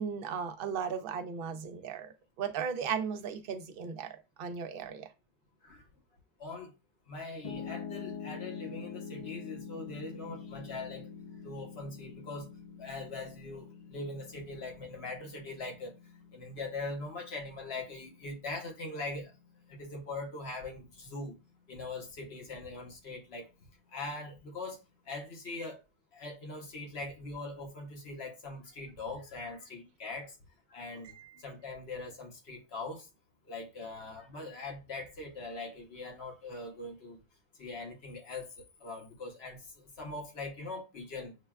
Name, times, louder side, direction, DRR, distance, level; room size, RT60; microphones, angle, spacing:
voice 1, 0.0-5.1 31.1-31.3, right 6 dB, 65° right, 0.7 m, -36 dB
voice 2, 6.4-6.7 7.1-11.1 11.4-12.5 12.8-15.9 16.3-19.3 19.7-21.4 21.7-23.5 23.9-25.8 26.1-30.4 30.7-33.1 33.5-37.2 37.6-41.3, left 2 dB, 80° left, 1.2 m, -42 dB
Piano, 7.4-19.6, left 6 dB, 45° left, 0.6 m, -46 dB
6.3 x 2.2 x 2.3 m
omnidirectional pair, 1.0 m